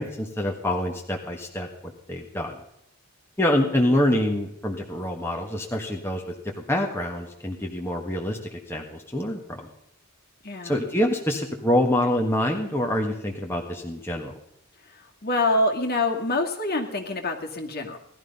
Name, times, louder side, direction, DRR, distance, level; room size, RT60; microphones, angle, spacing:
voice 1, 0.0-2.6 3.4-6.3 6.7-9.7 10.6-14.3, left 1 dB, 10° left, 0 dB, 1.6 m, -26 dB
voice 2, 10.4-10.8 14.9-18.0, left 2 dB, 45° left, 2 dB, 2.2 m, -26 dB
18.5 x 12.5 x 5.5 m, 0.76 s
head